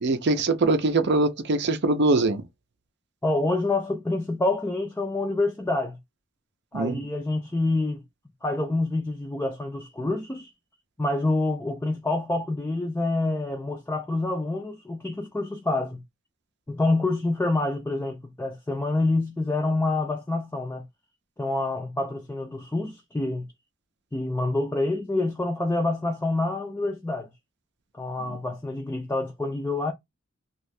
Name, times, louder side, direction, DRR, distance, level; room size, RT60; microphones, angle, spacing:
voice 1, 0.0-2.4 6.7-7.0 28.2-28.4, right 2 dB, 55° right, 0.5 m, -23 dB
voice 2, 3.2-6.0 6.7-8.0 8.4-10.5 11.0-16.0 16.7-20.8 21.4-23.4 24.1-27.3 27.9-29.9, left 2 dB, 10° left, 0.4 m, -27 dB
2.7 x 2.3 x 3.2 m
head